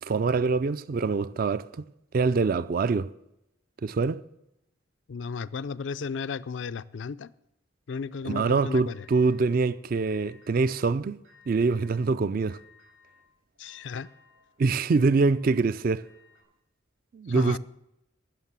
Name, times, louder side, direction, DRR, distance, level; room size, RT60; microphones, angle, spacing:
voice 1, 0.0-1.7 2.1-3.1 3.8-4.2 8.3-11.2 11.5-12.6 14.6-16.1 17.1-17.6, right 4 dB, 45° right, 0.4 m, -24 dB
voice 2, 5.1-7.3 7.9-9.1 13.6-14.1 17.3-17.6, left 5 dB, 65° left, 0.4 m, -34 dB
sound 1, 8.9-9.7 10.1-10.9 11.2-12.1 12.4-16.4, left 4 dB, 85° right, 5.3 m, -59 dB
15.0 x 6.6 x 7.4 m
head